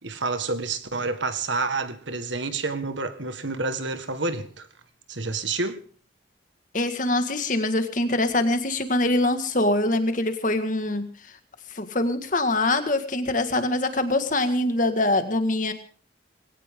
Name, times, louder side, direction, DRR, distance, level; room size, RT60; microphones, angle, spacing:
voice 1, 0.0-4.7 5.1-5.8, right 3 dB, 80° right, 1.7 m, -29 dB
voice 2, 6.7-11.1 11.7-15.7, left 2 dB, 45° left, 1.9 m, -24 dB
20.5 x 17.5 x 3.8 m
head